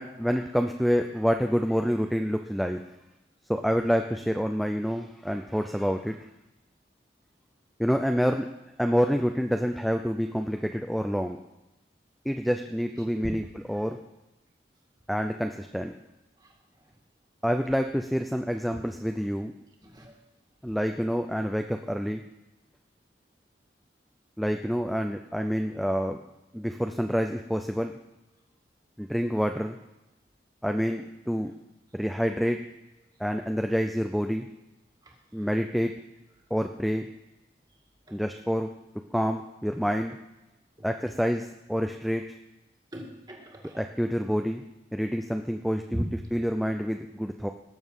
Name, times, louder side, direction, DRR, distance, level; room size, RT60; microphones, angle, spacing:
voice 1, 0.0-2.8 3.5-6.2 7.8-8.5 8.8-11.4 12.3-14.0 15.1-16.0 17.4-19.5 20.6-22.2 24.4-26.2 26.5-27.9 29.0-29.8 30.6-31.5 31.9-32.6 33.2-34.5 35.3-35.9 36.5-37.1 38.1-38.7 39.1-40.2 40.8-42.2 43.8-44.6 44.9-46.0 46.3-47.5, equal, ahead, 5 dB, 0.4 m, -27 dB
voice 2, 19.8-20.2 35.0-35.5 38.1-38.2 40.8-40.9 42.9-43.8 45.9-46.1, equal, 20° right, 1 dB, 1.9 m, -38 dB
18.5 x 7.1 x 5.5 m, 0.95 s
head